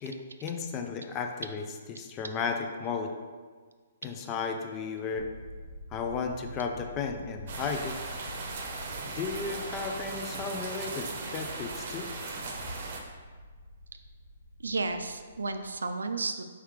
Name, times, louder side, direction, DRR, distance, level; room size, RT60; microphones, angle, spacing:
voice 1, 0.0-3.1 4.0-5.3 5.9-8.0 9.1-12.1, left 5 dB, 25° left, 5 dB, 0.4 m, -34 dB
sound 1, 5.1-15.8, left 1 dB, 90° left, 0.5 m, -47 dB
sound 2, 7.5-13.0, right 3 dB, 55° right, 0.7 m, -38 dB
voice 2, 14.6-16.4, right 3 dB, 85° right, 8 dB, 0.3 m, -32 dB
4.6 x 3.4 x 3.2 m, 1.5 s
hypercardioid pair, 135°, 0 cm